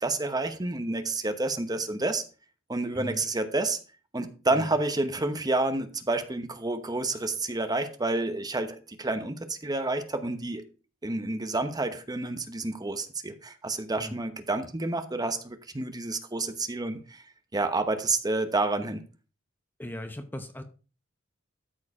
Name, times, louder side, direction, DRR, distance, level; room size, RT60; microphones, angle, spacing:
voice 1, 0.0-2.2 2.7-3.8 4.1-10.6 11.0-17.2 17.5-19.0, right 2 dB, 20° right, 1.0 m, -29 dB
voice 2, 2.9-3.2 4.5-4.7 14.0-14.2 19.8-20.6, left 1 dB, 10° left, 0.8 m, -38 dB
13.0 x 4.7 x 4.8 m
head